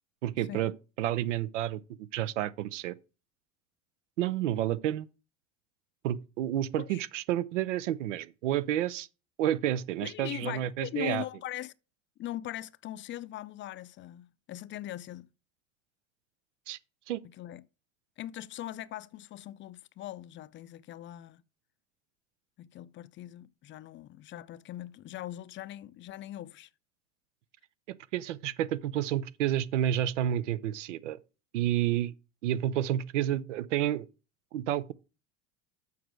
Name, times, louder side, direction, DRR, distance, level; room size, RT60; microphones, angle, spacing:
voice 1, 0.2-0.7 1.0-2.9 4.2-5.1 6.0-9.1 9.4-11.2 16.7-16.8 17.1-17.2 28.1-31.2 31.5-32.1 32.4-34.0 34.5-34.9, right 12 dB, 90° right, 0.6 m, -30 dB
voice 2, 10.0-11.7 12.2-15.3 17.2-17.6 18.2-21.4 22.6-26.7, left 13 dB, 35° left, 0.4 m, -41 dB
7.1 x 4.7 x 6.2 m
supercardioid pair, 100°, 35 cm